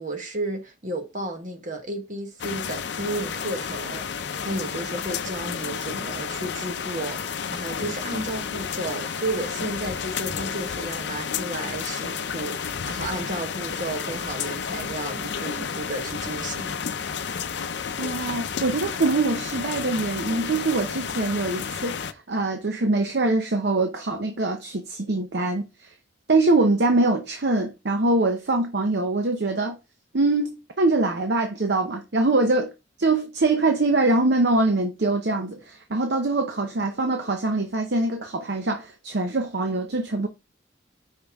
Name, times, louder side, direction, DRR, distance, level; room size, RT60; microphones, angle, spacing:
voice 1, 0.0-16.8, right 2 dB, 40° right, 1.3 m, -33 dB
sound 1, 2.4-22.1, left 6 dB, 60° left, 0.5 m, -31 dB
voice 2, 18.0-25.9 26.3-29.8 30.1-32.7 33.0-40.3, right 2 dB, 60° right, 0.7 m, -23 dB
5.6 x 5.3 x 3.5 m
head